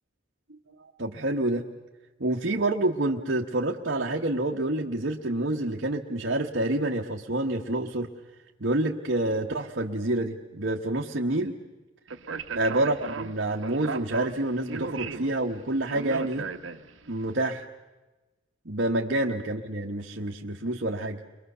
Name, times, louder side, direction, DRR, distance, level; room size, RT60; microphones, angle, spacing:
voice 1, 0.8-1.6 2.2-8.1 8.6-11.6 12.5-16.5 17.1-17.6 18.6-21.2, right 1 dB, 60° right, 0 dB, 1.2 m, -28 dB
Speech, 12.1-17.1, right 4 dB, 80° right, 1.0 m, -37 dB
30.0 x 23.0 x 6.7 m, 1.1 s
head